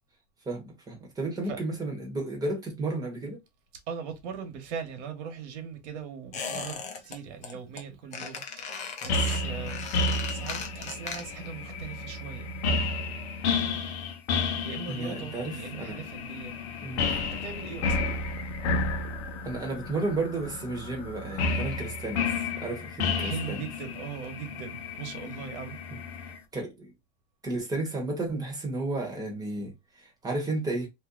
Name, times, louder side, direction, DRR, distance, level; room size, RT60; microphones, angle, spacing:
voice 1, 0.4-3.4 14.9-16.1 16.8-17.1 19.4-23.6 25.9-26.9 27.4-30.9, right 2 dB, 10° right, 1.1 m, -33 dB
voice 2, 3.9-9.9 10.3-12.5 14.6-16.6 17.1-18.0 23.2-25.8, right 7 dB, 80° right, 1.2 m, -40 dB
Squeak, 6.3-7.2 7.4-7.8 8.1-11.5 11.8-11.9, left 6 dB, 20° left, 0.4 m, -37 dB
sound 1, 9.1-26.4, left 3 dB, 70° left, 0.8 m, -31 dB
2.8 x 2.2 x 3.7 m
supercardioid pair, 150°, 35 cm